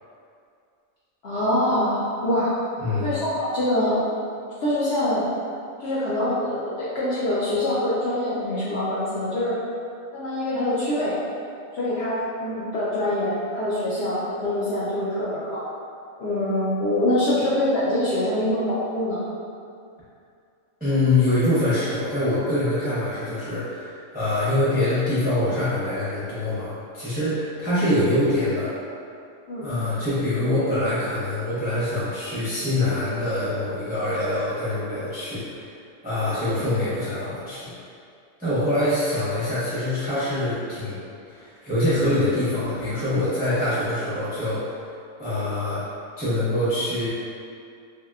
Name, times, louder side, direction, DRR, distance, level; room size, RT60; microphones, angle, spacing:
voice 1, 1.2-2.5 3.0-4.0 4.6-5.2 5.8-9.6 10.1-11.2 11.7-15.6 16.2-19.2 29.5-29.7, left 1 dB, 60° left, -10 dB, 0.7 m, -24 dB
voice 2, 2.8-3.1 20.8-28.7 29.6-35.7 36.0-37.7 38.4-41.0 41.3-44.7 45.2-45.8 46.2-47.1, left 1 dB, 10° right, -12 dB, 0.4 m, -24 dB
3.1 x 2.8 x 2.3 m, 2.4 s
omnidirectional pair, 1.5 m